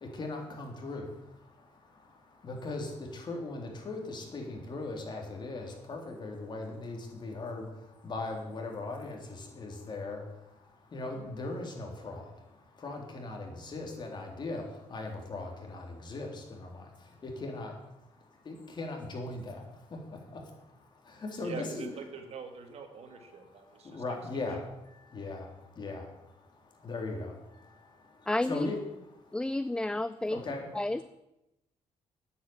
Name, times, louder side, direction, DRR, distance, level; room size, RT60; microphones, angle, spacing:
voice 1, 0.0-1.1 2.4-7.7 8.0-10.2 10.9-12.2 12.8-14.6 14.9-16.9 17.2-17.7 18.5-19.6 21.1-21.9 23.8-24.6 25.1-25.5 25.8-26.0 26.8-27.3 28.4-28.8 30.3-30.7, left 2 dB, 40° left, 1 dB, 3.4 m, -38 dB
voice 2, 21.4-24.0 24.3-24.5, right 5 dB, 60° right, 6 dB, 2.0 m, -44 dB
voice 3, 28.3-28.7 29.3-30.4 30.7-31.0, left 1 dB, 5° left, 15 dB, 0.4 m, -30 dB
9.4 x 8.3 x 8.7 m, 0.93 s
cardioid pair, 100°, 12 cm